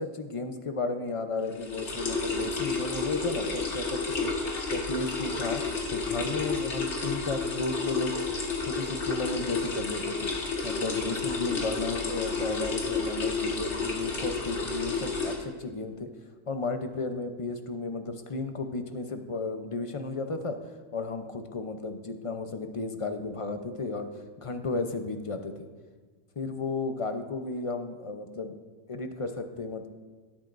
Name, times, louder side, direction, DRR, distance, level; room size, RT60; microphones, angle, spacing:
voice 1, 0.0-4.3 4.7-5.6 5.9-10.3 10.6-16.1 16.5-20.6 20.9-25.7 26.4-28.5 28.9-29.9, left 3 dB, 35° left, 7 dB, 0.6 m, -34 dB
sound 1, 1.5-15.3, left 4 dB, 60° left, 1.9 m, -31 dB
17.0 x 8.4 x 2.6 m, 1.5 s
omnidirectional pair, 1.3 m